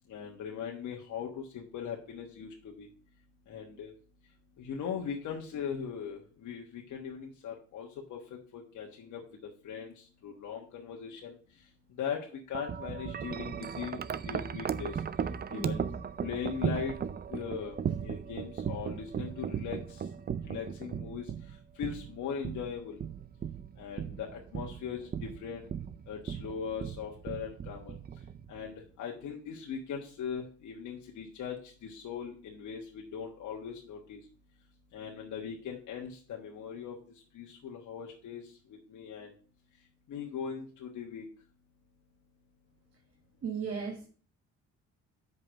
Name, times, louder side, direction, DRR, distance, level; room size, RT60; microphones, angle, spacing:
voice 1, 0.1-2.9 3.5-3.9 4.6-8.2 8.5-9.2 9.6-9.9 10.2-11.4 12.0-14.0 14.3-15.0 15.5-15.8 16.2-16.9 17.3-17.7 18.0-19.8 20.4-21.2 21.8-23.0 23.8-25.7 26.1-27.9 28.5-31.6 31.8-34.2 34.9-37.0 37.3-38.4 38.9-39.3 40.1-41.3, left 7 dB, 75° left, 0 dB, 1.3 m, -39 dB
Wind chime, 12.5-28.7, right 7 dB, 30° right, 0.4 m, -37 dB
voice 2, 43.4-44.1, right 6 dB, 50° right, 1 dB, 1.5 m, -35 dB
5.4 x 5.0 x 6.3 m, 0.41 s
cardioid pair, 90°, 30 cm